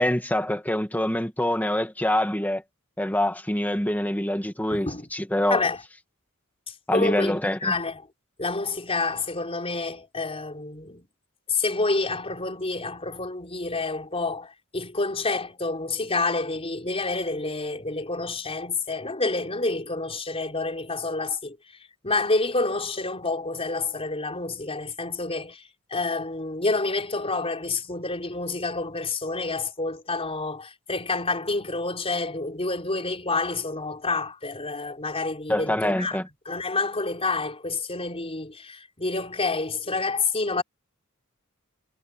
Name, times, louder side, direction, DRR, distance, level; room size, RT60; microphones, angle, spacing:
voice 1, 0.0-2.6 3.0-5.6 6.9-7.7 35.5-36.3, left 1 dB, 10° left, 2.0 m, -25 dB
voice 2, 4.7-5.1 5.5-5.8 6.9-8.0 8.4-11.1 11.5-21.6 22.0-25.6 25.9-36.2 36.5-40.6, left 3 dB, 25° left, 4.6 m, -28 dB
head